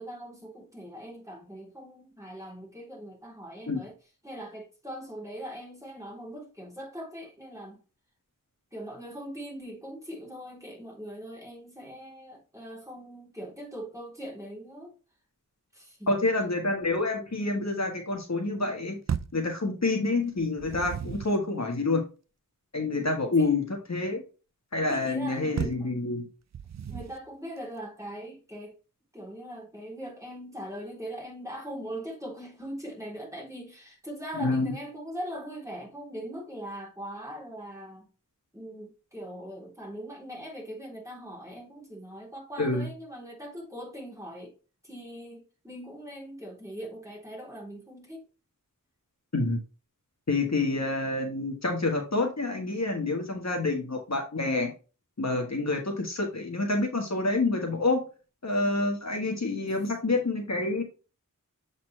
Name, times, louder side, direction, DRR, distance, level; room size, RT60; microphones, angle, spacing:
voice 1, 0.0-4.0 4.2-7.8 8.7-14.9 15.7-16.3 23.3-23.5 24.9-25.9 26.9-28.8 29.1-38.1 38.5-44.6 44.8-48.2 59.6-60.1, right 1 dB, 10° right, 3.3 m, -41 dB
voice 2, 16.1-19.0 19.3-22.0 22.7-23.6 23.9-24.2 24.7-26.3 34.4-34.7 42.6-42.9 49.3-49.6 50.3-54.7 55.2-58.0 58.4-60.8, left 2 dB, 55° left, 1.4 m, -27 dB
sound 1, 19.1-19.5 20.4-21.4 25.6-25.9 26.5-27.3, right 8 dB, 55° right, 0.4 m, -34 dB
7.4 x 4.1 x 3.2 m
wide cardioid pair, 60°, 33 cm